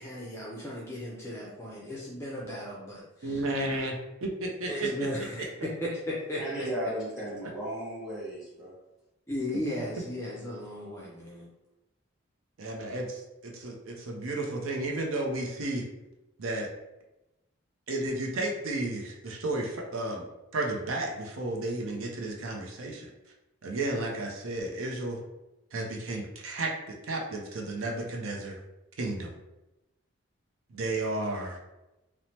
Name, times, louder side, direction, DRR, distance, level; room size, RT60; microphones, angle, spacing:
voice 1, 0.0-3.4 4.6-5.5 5.8-6.7 9.3-11.5, left 1 dB, 15° left, -5 dB, 0.4 m, -36 dB
voice 2, 3.2-3.9 4.4-4.9 12.6-13.2 13.5-15.8 16.4-16.7 17.9-20.2 20.5-23.1 23.6-25.2 25.7-26.7 27.1-28.5 29.0-29.4 30.7-31.6, right 2 dB, 75° right, 0 dB, 0.5 m, -32 dB
voice 3, 6.3-8.7, right 1 dB, 5° right, -9 dB, 1.2 m, -35 dB
3.0 x 2.0 x 2.8 m, 0.97 s
head